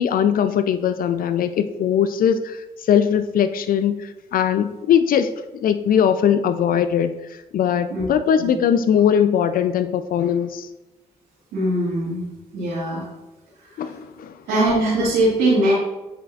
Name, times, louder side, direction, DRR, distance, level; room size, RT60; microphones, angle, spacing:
voice 1, 0.0-10.7 13.8-14.4, left 8 dB, 65° left, 11 dB, 0.4 m, -20 dB
voice 2, 11.5-12.2 12.5-13.0 13.6-13.7 14.5-15.7, right 1 dB, 80° right, -10 dB, 2.1 m, -21 dB
8.6 x 5.2 x 2.4 m, 1.1 s
hypercardioid pair, 45°, 16 cm